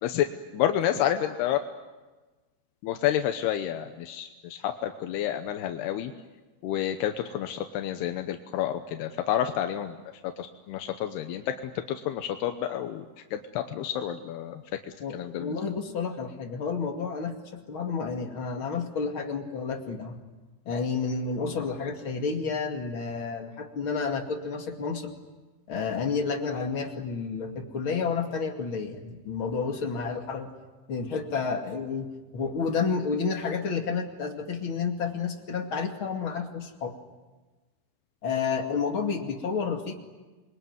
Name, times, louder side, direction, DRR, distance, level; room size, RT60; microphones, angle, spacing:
voice 1, 0.5-1.6 2.8-6.1 6.6-10.0 10.4-11.5 11.9-13.1 13.3-14.6 15.1-15.6, left 11 dB, 85° left, 6 dB, 3.1 m, -29 dB
voice 2, 15.0-20.2 20.7-25.2 25.7-30.5 30.9-32.1 32.3-36.9 38.2-39.9, left 5 dB, 35° left, 3 dB, 2.6 m, -30 dB
28.0 x 22.0 x 9.5 m, 1.2 s
omnidirectional pair, 4.6 m